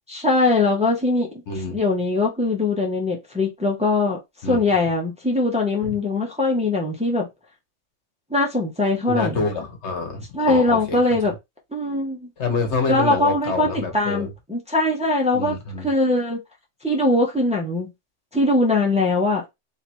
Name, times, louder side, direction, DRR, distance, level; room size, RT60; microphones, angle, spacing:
voice 1, 0.1-1.3 1.7-4.2 4.4-7.3 8.3-9.5 10.3-11.3 11.7-12.3 12.9-16.4 16.8-17.9 18.3-19.4, left 2 dB, 5° right, 0.9 m, -21 dB
voice 2, 1.5-1.8 4.4-4.6 9.1-11.0 12.4-14.3 15.3-15.9, left 4 dB, 65° left, 1.4 m, -27 dB
3.4 x 2.8 x 4.4 m
omnidirectional pair, 1.3 m